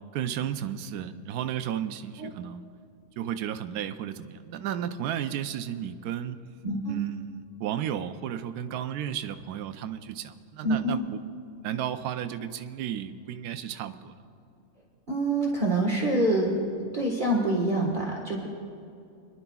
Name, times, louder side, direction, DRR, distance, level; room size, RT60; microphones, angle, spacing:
voice 1, 0.1-2.7 3.2-6.4 6.9-11.2 11.6-14.1, right 10 dB, 75° right, 8 dB, 1.1 m, -33 dB
voice 2, 6.6-7.0 10.6-11.0 15.1-16.6 16.9-18.5, right 1 dB, 30° right, -3 dB, 1.4 m, -26 dB
28.5 x 11.0 x 2.3 m, 2.5 s
omnidirectional pair, 1.7 m